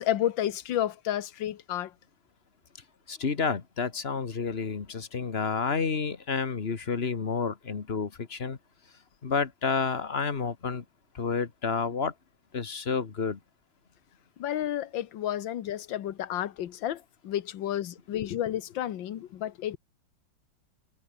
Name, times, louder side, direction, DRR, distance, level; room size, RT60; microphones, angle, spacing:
voice 1, 0.0-1.9 14.4-19.8, left 11 dB, 70° left, 1.7 m, -31 dB
voice 2, 3.1-8.6 9.2-10.8 11.2-12.1 12.5-13.4, left 5 dB, 35° left, 1.5 m, -30 dB
omnidirectional pair, 2.3 m